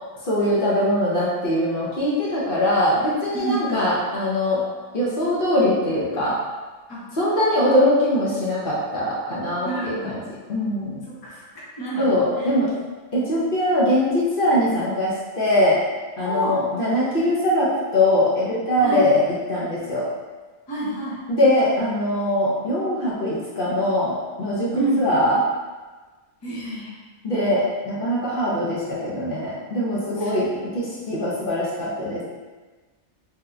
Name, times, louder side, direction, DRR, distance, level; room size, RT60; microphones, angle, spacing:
voice 1, 0.2-4.6 4.9-6.4 7.1-10.2 10.5-11.0 12.0-12.7 13.1-15.8 16.2-20.1 21.3-25.4 27.2-32.2, left 1 dB, 55° left, -7 dB, 0.9 m, -22 dB
voice 2, 3.3-3.8 6.9-7.1 9.6-10.2 11.1-12.5 16.2-16.6 18.8-19.1 20.7-21.2 24.7-25.1 26.4-27.0 30.2-30.3, right 2 dB, 25° left, -7 dB, 0.6 m, -28 dB
3.5 x 2.7 x 2.4 m, 1.3 s
omnidirectional pair, 1.2 m